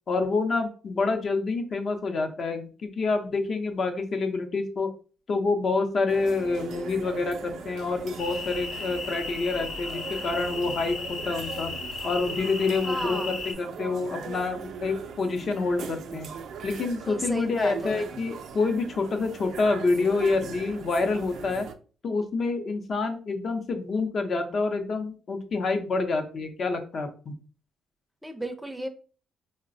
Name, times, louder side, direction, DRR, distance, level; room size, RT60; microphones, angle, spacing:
voice 1, 0.1-4.9 5.3-11.7 12.0-16.3 16.6-21.7 22.0-27.3, left 3 dB, 50° left, 0.6 m, -27 dB
sound 1, 6.1-21.7, right 6 dB, 70° right, 0.3 m, -41 dB
sound 2, 8.2-13.5, left 3 dB, 85° left, 0.7 m, -35 dB
voice 2, 12.8-13.4 17.1-18.1 28.2-28.9, right 1 dB, 5° right, 0.5 m, -33 dB
3.9 x 2.1 x 2.6 m
cardioid pair, 90°, 0 cm